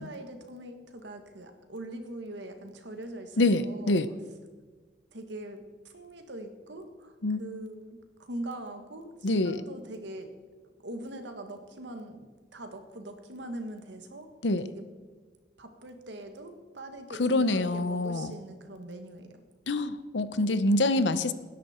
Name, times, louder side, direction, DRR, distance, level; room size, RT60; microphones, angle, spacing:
voice 1, 0.0-4.0 5.1-10.3 10.8-14.3 14.6-14.8 15.6-19.4, right 1 dB, 75° right, 6 dB, 1.7 m, -42 dB
voice 2, 3.4-4.1 7.2-7.4 9.2-9.6 14.4-14.7 17.2-18.4 19.7-21.3, left 2 dB, 80° left, 14 dB, 0.8 m, -26 dB
19.5 x 10.5 x 4.4 m, 1.4 s
head